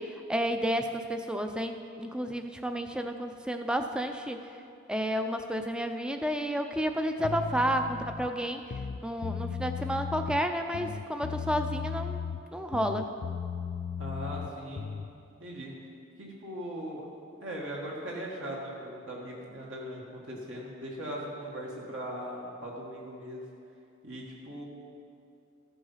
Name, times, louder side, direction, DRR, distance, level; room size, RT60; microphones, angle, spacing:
voice 1, 0.0-4.4 4.9-8.6 9.0-12.2 12.5-13.1, equal, 5° right, 6 dB, 0.5 m, -31 dB
sound 1, 7.2-8.3 8.6-10.4 10.7-12.5 12.7-15.1, left 6 dB, 55° left, 0.3 m, -36 dB
voice 2, 14.0-15.0 15.4-15.8 16.2-17.1 17.4-23.4 24.0-24.6, equal, 65° right, -3 dB, 1.7 m, -39 dB
14.0 x 7.9 x 5.7 m, 2.5 s
head